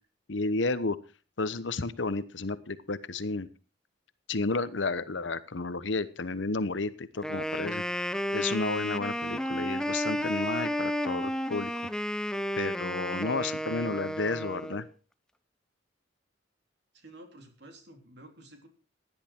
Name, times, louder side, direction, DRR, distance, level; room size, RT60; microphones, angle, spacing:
voice 1, 0.3-1.0 1.4-3.5 4.3-7.8 8.3-11.7 12.6-14.9, left 3 dB, 80° left, 14 dB, 1.0 m, -32 dB
Wind instrument woodwind instrument, 7.2-14.9, equal, 5° left, 0.7 m, -32 dB
voice 2, 16.9-18.7, right 1 dB, 65° right, 4 dB, 3.5 m, -51 dB
16.0 x 11.0 x 4.5 m, 0.34 s
head